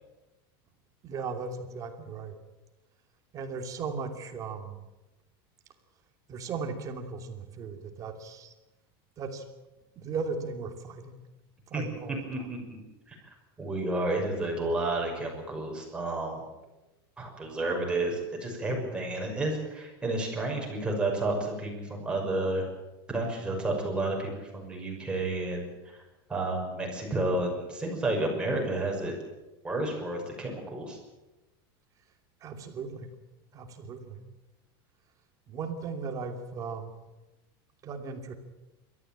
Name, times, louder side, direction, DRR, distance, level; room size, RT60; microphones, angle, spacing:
voice 1, 1.0-2.4 3.3-4.8 6.3-8.5 9.2-9.4 10.0-11.2 11.7-12.2 32.4-33.1 33.5-34.2 35.5-36.9 37.8-38.3, right 5 dB, 25° right, 5 dB, 2.8 m, -37 dB
voice 2, 12.3-12.8 13.1-13.2 13.6-16.4 17.2-22.7 23.1-26.0 26.3-29.2 29.6-31.0, right 2 dB, 10° right, 0 dB, 5.9 m, -31 dB
30.0 x 13.5 x 8.8 m, 1.1 s
supercardioid pair, 165°, 13 cm